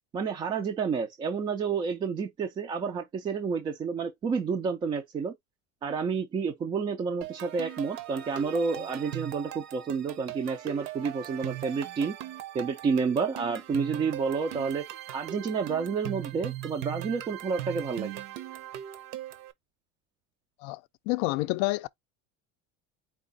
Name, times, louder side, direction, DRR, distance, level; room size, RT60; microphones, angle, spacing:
voice 1, 0.1-5.3 5.8-12.1 12.5-14.8 15.1-18.2, right 5 dB, 15° right, 0.3 m, -30 dB
sound 1, 7.2-19.5, right 13 dB, 60° right, 0.8 m, -39 dB
voice 2, 21.1-21.9, left 22 dB, 60° left, 0.4 m, -28 dB
4.7 x 2.4 x 3.9 m
cardioid pair, 180°, 34 cm